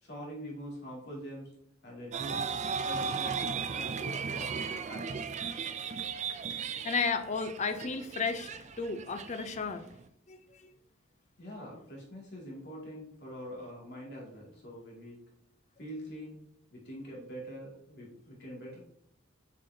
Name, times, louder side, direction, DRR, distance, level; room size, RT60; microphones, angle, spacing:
voice 1, 0.0-1.5 1.8-2.5 2.8-3.3 3.7-5.3 11.4-15.2 15.8-16.4 16.7-18.8, equal, 55° left, -3 dB, 2.3 m, -44 dB
sound 1, 2.1-10.0, right 5 dB, 35° right, 0.4 m, -36 dB
voice 2, 6.5-9.9 10.3-10.7 16.9-17.1, left 4 dB, 35° left, 8 dB, 0.6 m, -34 dB
6.6 x 5.3 x 2.7 m, 0.75 s
head